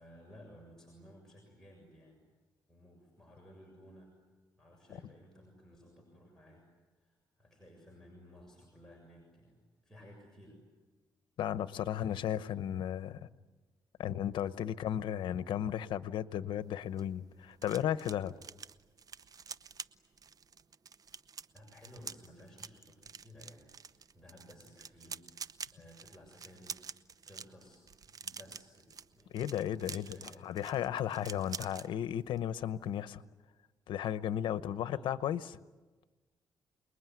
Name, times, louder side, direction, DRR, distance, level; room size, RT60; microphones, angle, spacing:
voice 1, 0.0-2.2 2.7-4.1 4.5-6.7 6.9-10.6 12.4-12.5 21.5-26.9 27.3-29.4 29.9-30.5 34.6-35.1, equal, 5° left, 7.2 m, -57 dB
voice 2, 11.4-13.3 14.0-18.4 29.3-33.2 33.9-35.6, left 10 dB, 85° left, 0.9 m, -35 dB
sound 1, 16.7-31.9 32.2-32.5 32.7-33.0, right 6 dB, 50° right, 0.8 m, -48 dB
28.5 x 21.0 x 9.4 m
cardioid pair, 90°, 8 cm